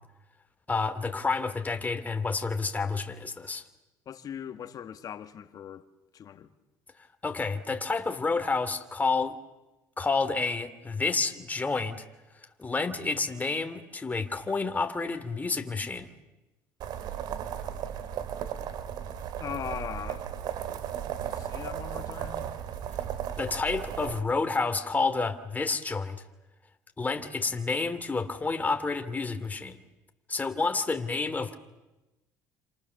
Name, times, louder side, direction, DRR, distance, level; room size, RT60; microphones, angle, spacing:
voice 1, 0.7-3.6 7.2-9.4 10.0-12.0 12.6-16.1 23.4-26.2 27.0-29.8 30.3-31.6, left 4 dB, 20° left, 2.7 m, -29 dB
voice 2, 4.1-5.9 6.1-6.5 19.4-20.3 21.3-22.5, left 9 dB, 50° left, 1.9 m, -39 dB
sound 1, 16.8-24.2, right 9 dB, 65° right, 2.4 m, -35 dB
29.0 x 27.5 x 7.0 m
supercardioid pair, 85°, 8 cm